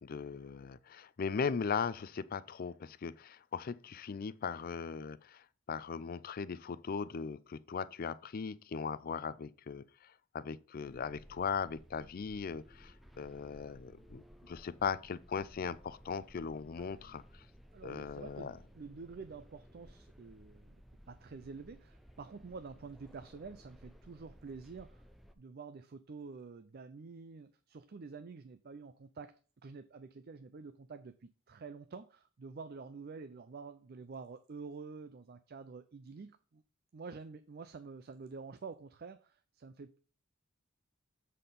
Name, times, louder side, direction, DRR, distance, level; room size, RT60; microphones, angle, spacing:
voice 1, 0.0-17.2 17.8-18.5, left 6 dB, 45° left, 0.4 m, -39 dB
sound 1, 10.8-25.3, equal, ahead, 0.6 m, -58 dB
voice 2, 17.7-20.8 21.1-25.0 25.4-36.6 36.9-40.0, right 4 dB, 50° right, 0.4 m, -48 dB
7.6 x 4.2 x 5.2 m
head